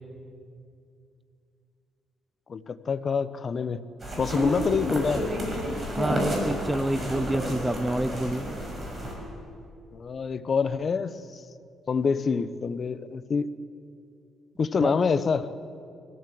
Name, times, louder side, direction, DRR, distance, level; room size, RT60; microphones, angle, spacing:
voice 1, 2.5-3.8 4.2-5.2 9.9-11.4 11.9-13.5 14.6-15.5, left 5 dB, 45° left, 13 dB, 0.9 m, -26 dB
sound 1, 4.0-9.1, equal, 30° right, 6.1 m, -30 dB
voice 2, 6.0-8.5 14.8-14.9, right 1 dB, 10° right, 15 dB, 0.5 m, -28 dB
25.0 x 15.5 x 7.8 m, 2.4 s
cardioid pair, 90°, 0 cm